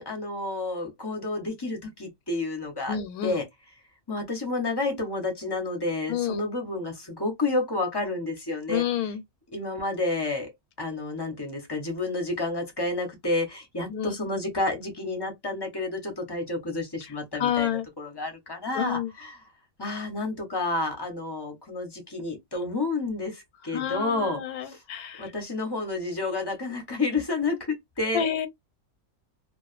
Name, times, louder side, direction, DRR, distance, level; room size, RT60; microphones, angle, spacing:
voice 1, 0.0-3.5 4.1-8.8 9.5-10.5 10.8-19.5 19.8-24.8 25.2-28.3, left 2 dB, 25° left, 0.6 m, -30 dB
voice 2, 2.9-3.4 6.1-6.4 8.7-9.2 13.9-14.1 17.3-17.9 18.7-19.1 23.7-25.2 28.1-28.5, left 9 dB, 85° left, 1.1 m, -28 dB
2.5 x 2.3 x 2.3 m
omnidirectional pair, 1.5 m